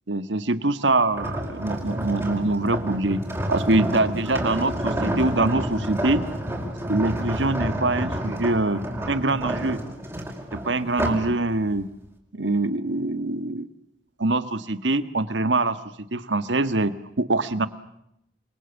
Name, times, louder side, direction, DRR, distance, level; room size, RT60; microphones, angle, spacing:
voice 1, 0.1-3.2 3.5-6.2 6.9-9.8 10.5-11.9 12.3-13.7 14.2-15.8 16.1-17.7, right 2 dB, 80° right, 12 dB, 1.6 m, -24 dB
sound 1, 1.1-11.3 11.8-12.0, right 1 dB, 15° right, 5.3 m, -29 dB
28.5 x 23.5 x 7.2 m, 0.77 s
head